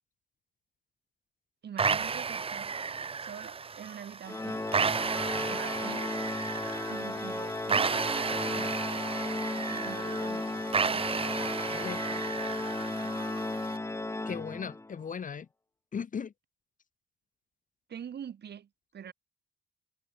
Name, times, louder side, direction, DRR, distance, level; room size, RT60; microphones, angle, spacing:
voice 1, 1.6-4.6 5.5-6.1 6.4-6.6 6.9-8.9 9.6-10.5 10.8-11.2 13.0-13.2 17.9-19.1, right 8 dB, 55° right, 6.1 m, -45 dB
sound 1, 1.8-13.8, right 5 dB, 30° right, 0.8 m, -33 dB
Organ, 4.3-15.0, left 2 dB, 15° left, 1.5 m, -35 dB
voice 2, 11.7-12.2 14.3-15.5 15.9-16.3, left 6 dB, 40° left, 1.7 m, -37 dB
cardioid pair, 90°, 20 cm